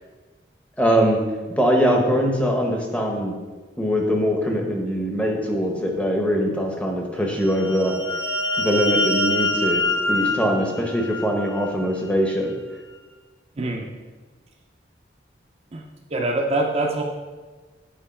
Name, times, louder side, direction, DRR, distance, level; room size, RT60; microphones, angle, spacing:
voice 1, 0.8-1.2 1.5-3.4 3.8-7.9 8.6-9.8 10.1-12.5, equal, 5° left, 1 dB, 0.8 m, -22 dB
sound 1, 7.3-11.8, left 2 dB, 85° left, 1.3 m, -25 dB
voice 2, 13.6-13.9 15.7-15.8 16.1-17.0, right 2 dB, 35° right, 1 dB, 0.5 m, -24 dB
7.6 x 4.4 x 4.3 m, 1.3 s
head